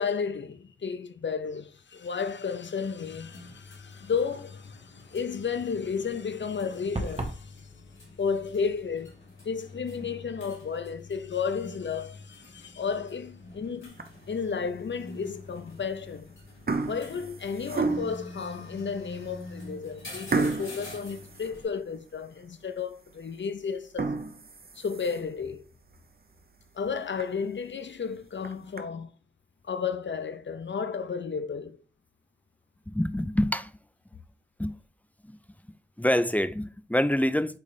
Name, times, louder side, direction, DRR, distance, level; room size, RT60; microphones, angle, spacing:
voice 1, 0.0-7.6 8.2-9.2 9.4-13.9 14.3-16.3 16.9-24.1 24.8-25.7 26.7-29.1 29.6-31.8, left 6 dB, 70° left, 0.6 m, -33 dB
sound 1, 3.0-21.6, left 2 dB, 90° left, 3.1 m, -46 dB
sound 2, 7.0-7.4, right 2 dB, 35° right, 1.1 m, -32 dB
sound 3, 13.9-14.4 15.0-15.1 15.9-16.2 16.4-18.3 18.9-19.0 19.4-19.5 20.3-22.1 22.5-22.6 23.1-23.2 23.8-25.4 25.9-26.0 26.4-26.5 26.8-26.9 27.2-27.3 28.2-28.8, right 4 dB, 50° right, 0.8 m, -32 dB
voice 2, 32.9-33.7 34.6-34.7 35.2-35.4 36.0-37.6, equal, 10° left, 0.4 m, -26 dB
8.3 x 3.2 x 4.0 m
wide cardioid pair, 85°, 20 cm